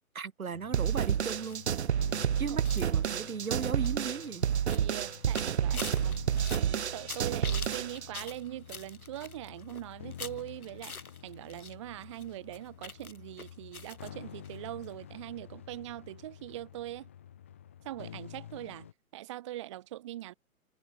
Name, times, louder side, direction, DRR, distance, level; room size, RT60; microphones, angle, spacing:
voice 1, 0.1-2.0 2.4-4.4 5.7-5.9, right 6 dB, 70° right, 1.3 m, -37 dB
sound 1, 0.5-18.9, left 10 dB, 10° left, 0.5 m, -50 dB
sound 2, 0.7-8.1, right 8 dB, 50° right, 0.5 m, -30 dB
sound 3, 0.9-11.7 12.0-14.1 14.4-14.6 14.8-14.9, left 4 dB, 75° left, 2.6 m, -46 dB
voice 2, 4.7-6.2 6.6-11.0 11.2-17.1 17.8-18.9 19.1-20.3, right 14 dB, 20° right, 0.8 m, -42 dB
figure-of-eight pair, 130°, 44 cm